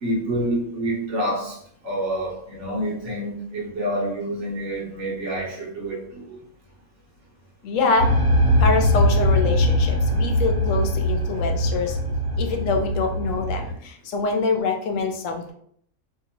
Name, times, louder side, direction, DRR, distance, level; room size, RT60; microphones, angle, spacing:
voice 1, 0.0-1.5 1.8-6.4, right 1 dB, 60° right, -3 dB, 1.3 m, -27 dB
voice 2, 7.6-8.1 8.6-12.0 12.4-15.5, left 4 dB, 70° left, 3 dB, 0.9 m, -25 dB
sound 1, 8.0-13.7, equal, 80° right, 1.3 m, -21 dB
2.9 x 2.7 x 2.8 m, 0.64 s
omnidirectional pair, 1.5 m